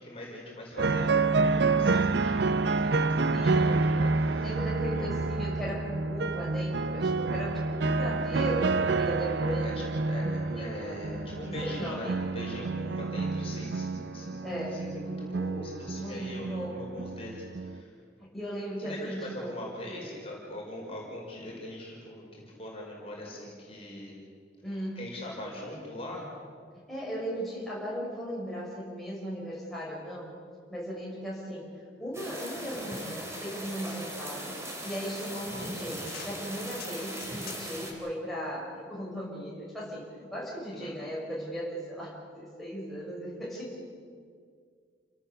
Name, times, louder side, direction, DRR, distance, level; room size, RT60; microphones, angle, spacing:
voice 1, 0.0-4.6 4.9-5.1 9.6-17.9 18.8-24.1 24.7-26.3 40.7-40.9, left 1 dB, 30° left, -3 dB, 5.2 m, -42 dB
sound 1, 0.8-17.8, right 3 dB, 65° right, 0.6 m, -28 dB
voice 2, 3.3-3.8 4.4-9.7 10.2-11.0 11.4-12.2 14.4-14.8 16.0-16.8 18.2-19.5 24.6-25.0 26.7-30.3 30.7-31.7 32.0-43.8, equal, ahead, -6 dB, 5.7 m, -37 dB
sound 2, 32.1-37.9, right 1 dB, 15° right, 3.8 m, -39 dB
sound 3, 34.8-37.9, left 8 dB, 50° left, 1.9 m, -49 dB
29.5 x 18.0 x 7.1 m, 2.1 s
head